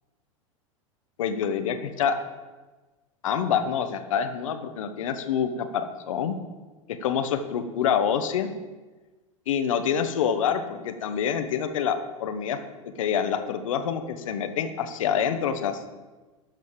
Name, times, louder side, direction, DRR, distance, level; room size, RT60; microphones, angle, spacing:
voice 1, 1.2-2.1 3.2-6.4 6.9-8.5 9.5-12.6 13.0-15.8, left 8 dB, 70° left, 8 dB, 1.2 m, -26 dB
12.0 x 5.4 x 7.6 m, 1.2 s
hypercardioid pair, 90°, 17 cm